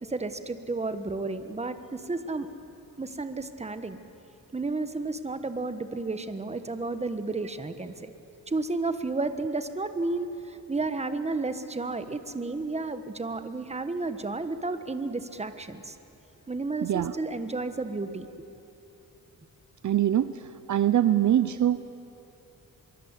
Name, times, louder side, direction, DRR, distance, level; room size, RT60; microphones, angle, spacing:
voice 1, 0.0-2.5 3.0-4.0 4.5-8.1 8.5-16.0 16.5-18.3, right 3 dB, 20° right, 10 dB, 1.3 m, -32 dB
voice 2, 16.8-17.1 19.8-20.3 20.7-21.8, right 11 dB, 60° right, 13 dB, 0.7 m, -23 dB
24.0 x 23.5 x 8.3 m, 2.9 s
cardioid pair, 100°, 33 cm